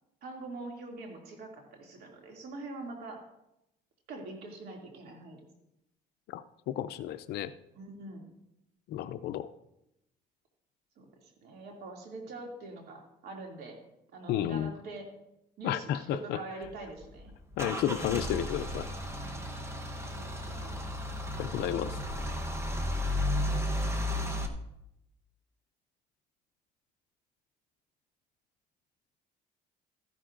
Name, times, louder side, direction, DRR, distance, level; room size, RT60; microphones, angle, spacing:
voice 1, 0.2-3.2 4.1-5.4 7.7-8.3 11.0-13.8 14.1-15.1 15.6-17.3 19.2-19.5 20.1-21.0, right 2 dB, 70° right, 1 dB, 2.5 m, -44 dB
voice 2, 6.3-7.5 8.9-9.5 14.3-14.7 15.6-16.4 17.6-18.9 21.4-22.0, left 11 dB, 75° left, 11 dB, 0.4 m, -32 dB
Car / Engine starting / Idling, 16.6-24.5, left 1 dB, 15° right, 1.0 m, -33 dB
13.5 x 11.5 x 2.5 m, 0.84 s
cardioid pair, 110°, 17 cm